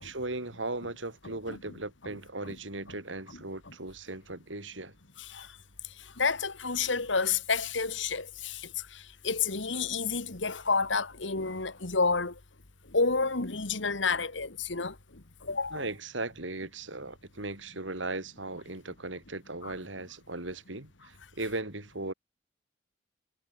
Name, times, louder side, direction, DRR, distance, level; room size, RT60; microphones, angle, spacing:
voice 1, 0.0-4.9 15.7-22.1, right 2 dB, 90° right, 4.7 m, -37 dB
voice 2, 1.2-1.7 2.4-2.5 2.9-3.0 3.3-3.4 3.7-3.8 5.2-5.6 5.8-12.4 12.9-15.9 19.6-19.7, left 4 dB, 85° left, 2.3 m, -30 dB
head